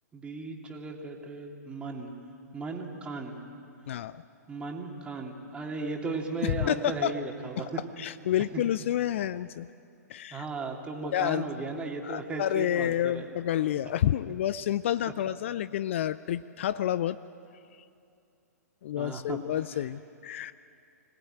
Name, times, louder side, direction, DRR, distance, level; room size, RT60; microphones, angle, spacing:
voice 1, 0.1-2.1 2.5-3.4 4.5-7.8 8.5-8.6 10.3-13.2 19.0-19.4, right 3 dB, 10° right, 1 dB, 2.6 m, -36 dB
voice 2, 3.9-4.2 6.4-7.1 7.6-9.7 10.1-10.5 11.1-11.4 12.0-17.2 17.8-17.9 18.8-20.5, left 11 dB, 45° left, 16 dB, 0.5 m, -29 dB
25.5 x 18.5 x 9.0 m, 2.5 s
figure-of-eight pair, 115°, 9 cm